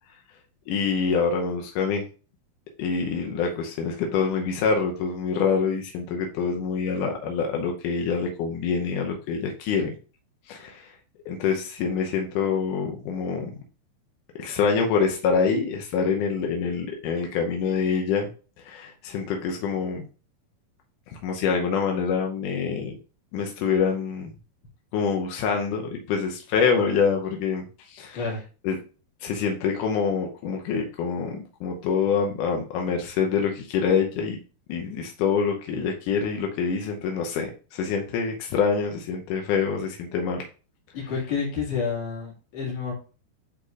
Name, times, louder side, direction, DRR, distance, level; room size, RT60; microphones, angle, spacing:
voice 1, 0.7-2.1 2.8-9.9 10.5-11.0 11.3-13.6 14.4-18.3 18.6-20.0 21.1-23.0 23.3-24.3 24.9-28.2 28.6-28.8 29.2-34.4 34.7-40.5, left 6 dB, 85° left, 2 dB, 1.8 m, -26 dB
voice 2, 40.9-42.9, left 5 dB, 50° left, -4 dB, 2.9 m, -29 dB
10.5 x 4.0 x 2.4 m, 0.36 s
omnidirectional pair, 4.6 m